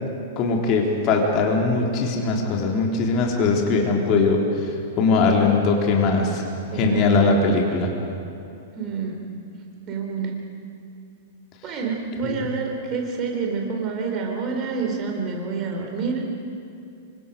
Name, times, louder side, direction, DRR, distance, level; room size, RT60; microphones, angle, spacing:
voice 1, 0.4-4.7 5.0-6.4 6.7-7.9 12.2-12.4, left 3 dB, 35° left, 0 dB, 3.5 m, -20 dB
voice 2, 6.7-7.3 8.7-9.2 9.9-10.4 11.6-16.2, right 5 dB, 30° right, 1 dB, 4.1 m, -28 dB
27.0 x 24.5 x 5.2 m, 2.7 s
figure-of-eight pair, 100°, 0 cm